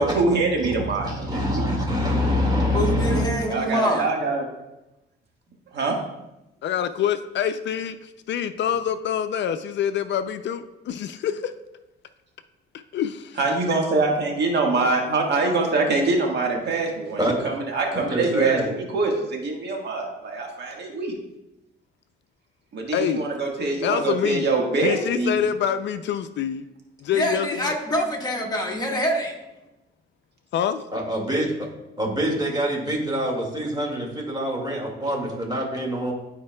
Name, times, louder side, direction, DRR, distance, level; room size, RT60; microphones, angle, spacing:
voice 1, 0.0-1.7 3.5-4.5 5.7-6.0 13.4-21.2 22.7-25.4, right 3 dB, 60° right, 0 dB, 1.6 m, -24 dB
voice 2, 0.6-3.2 17.2-17.4 17.9-18.7 30.9-31.7 32.0-36.1, equal, 20° right, 0 dB, 2.0 m, -25 dB
voice 3, 2.7-4.1 27.1-29.4, equal, 20° left, 0 dB, 1.5 m, -25 dB
voice 4, 6.6-11.5 12.9-13.4 22.9-23.3 23.8-24.5 24.8-26.6 27.0-27.7 30.5-30.8, left 9 dB, 65° left, 10 dB, 0.4 m, -26 dB
13.0 x 4.4 x 2.3 m, 0.96 s
cardioid pair, 90°, 20 cm